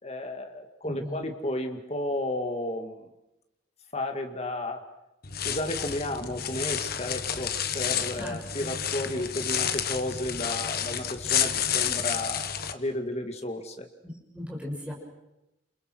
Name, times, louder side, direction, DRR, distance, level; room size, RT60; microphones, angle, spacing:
voice 1, 0.0-3.1 3.9-4.8 5.4-13.9, left 1 dB, 35° left, 5 dB, 2.2 m, -33 dB
voice 2, 0.8-1.2 8.1-8.8 14.0-14.9, left 1 dB, 5° right, -2 dB, 6.5 m, -38 dB
sound 1, 5.2-12.7, left 9 dB, 50° left, 1.3 m, -30 dB
28.5 x 28.0 x 6.3 m, 0.93 s
head